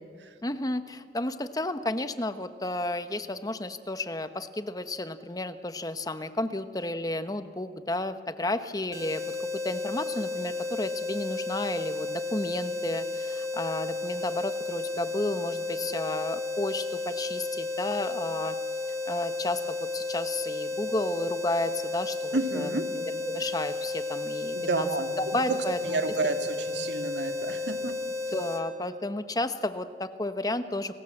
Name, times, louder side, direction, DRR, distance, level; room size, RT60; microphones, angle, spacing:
voice 1, 0.4-18.6 18.9-22.7 23.2-24.9 25.2-26.0 28.3-31.0, left 2 dB, 20° left, 10 dB, 0.9 m, -32 dB
sound 1, 8.9-28.6, left 3 dB, 20° right, 2.3 m, -33 dB
voice 2, 22.3-22.9 24.5-25.1 25.5-25.6 25.9-27.9, right 2 dB, 75° right, 6 dB, 2.0 m, -30 dB
29.5 x 19.0 x 7.8 m, 2.2 s
head